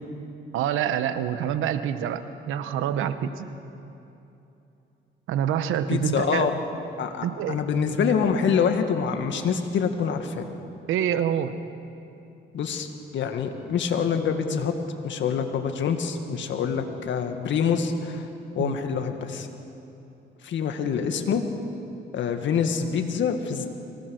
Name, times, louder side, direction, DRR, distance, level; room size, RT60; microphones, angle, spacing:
voice 1, 0.5-3.5 5.3-6.5 7.2-7.6 10.9-11.6 18.6-18.8, right 9 dB, 90° right, 11 dB, 1.1 m, -26 dB
voice 2, 5.9-6.5 7.0-10.5 12.5-12.9 13.1-14.7 15.0-18.3 18.6-19.5 20.4-21.4 22.1-23.7, left 6 dB, 70° left, 6 dB, 1.9 m, -26 dB
24.0 x 18.5 x 6.5 m, 2.9 s
cardioid pair, 90°, 20 cm